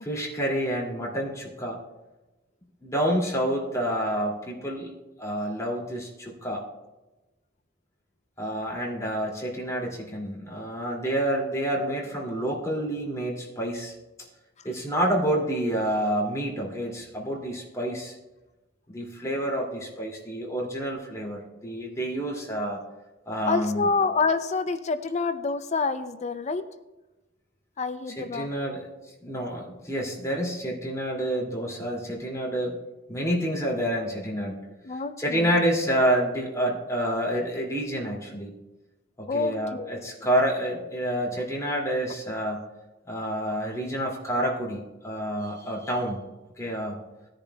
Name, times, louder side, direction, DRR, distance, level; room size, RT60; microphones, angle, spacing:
voice 1, 0.0-1.8 2.8-4.9 5.2-6.6 8.4-13.9 14.6-18.1 18.9-22.8 23.3-23.8 28.2-28.9 29.2-32.8 33.1-34.6 35.2-38.5 39.2-42.6 43.1-46.2 46.6-47.0, equal, 15° left, -3 dB, 2.4 m, -28 dB
voice 2, 23.5-26.7 27.8-28.5 34.8-35.5 39.3-39.9, left 4 dB, 35° left, 10 dB, 0.5 m, -27 dB
18.5 x 10.5 x 2.3 m, 1.1 s
head